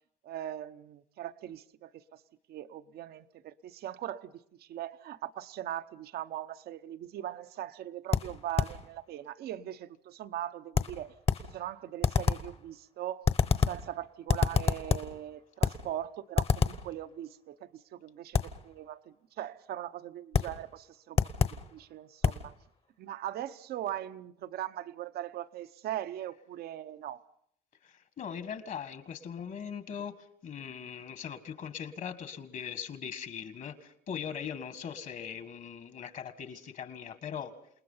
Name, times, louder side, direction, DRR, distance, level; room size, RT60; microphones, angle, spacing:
voice 1, 0.2-2.2 2.5-13.3 13.7-21.2 21.7-22.5 23.0-27.2, right 12 dB, 70° right, 0.9 m, -40 dB
sound 1, 8.1-8.8 10.7-11.5 12.0-12.5 13.2-13.9 14.3-15.2 15.6-15.9 16.4-16.9 18.3-18.6 20.3-20.6 21.2-21.7 22.2-22.5, left 6 dB, 35° left, 1.1 m, -28 dB
voice 2, 27.8-37.5, left 7 dB, 50° left, 1.7 m, -40 dB
28.5 x 19.5 x 5.6 m
cardioid pair, 110°, 17 cm